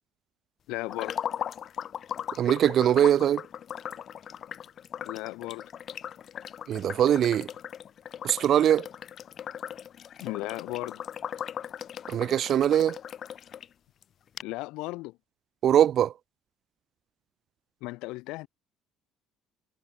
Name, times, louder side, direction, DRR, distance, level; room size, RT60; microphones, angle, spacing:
voice 1, 0.7-1.2 5.0-5.7 10.2-11.0 14.4-15.2 17.8-18.5, left 22 dB, 80° left, 5.2 m, -35 dB
sound 1, 0.9-13.7 14.0-14.1 14.4-14.5, left 9 dB, 50° left, 1.2 m, -38 dB
voice 2, 2.4-3.4 6.7-7.5 8.2-8.9 12.1-13.0 15.6-16.1, right 10 dB, 55° right, 0.6 m, -22 dB
cardioid pair, 105°, 0 cm